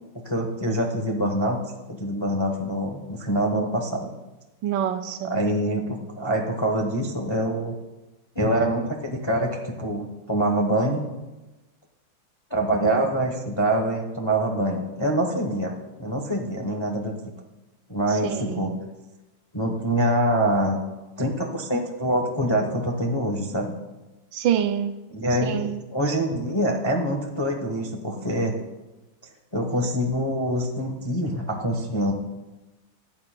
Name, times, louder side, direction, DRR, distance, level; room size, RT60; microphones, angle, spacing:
voice 1, 0.1-1.6 1.9-4.1 5.2-7.8 8.3-11.0 12.5-15.7 16.0-17.1 17.9-18.7 19.5-20.8 21.2-23.7 25.1-28.5 29.5-32.1, right 1 dB, 25° left, 0.5 m, -25 dB
voice 2, 4.6-5.3 18.2-18.7 24.3-25.0 25.4-25.8, right 9 dB, 75° right, 1.2 m, -26 dB
14.5 x 9.7 x 2.2 m
omnidirectional pair, 2.2 m